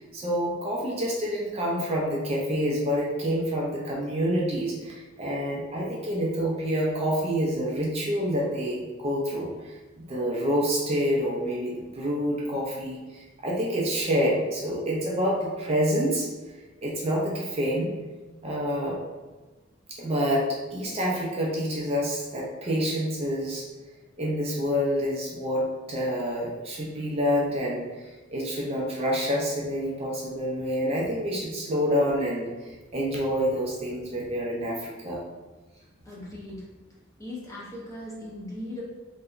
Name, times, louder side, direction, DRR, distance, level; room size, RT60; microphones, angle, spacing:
voice 1, 0.0-16.3 16.8-17.9 18.4-19.0 20.0-23.7 24.2-35.2, equal, 30° right, -3 dB, 0.4 m, -27 dB
voice 2, 36.0-36.7 37.2-38.8, left 1 dB, 15° left, -6 dB, 0.6 m, -38 dB
2.8 x 2.2 x 2.3 m, 1.2 s
head